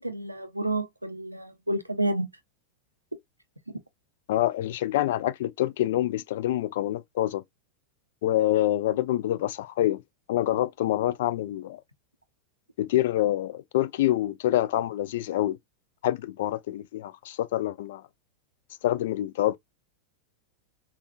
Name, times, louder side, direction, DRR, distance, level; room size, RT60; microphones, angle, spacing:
voice 1, 0.0-2.3 3.7-3.8, right 1 dB, 85° right, 0.5 m, -30 dB
voice 2, 4.3-7.4 8.2-10.0 10.3-11.8 12.8-15.6 16.0-18.0 18.8-19.6, left 14 dB, 55° left, 0.3 m, -26 dB
3.5 x 2.3 x 2.3 m
figure-of-eight pair, 90°, 0 cm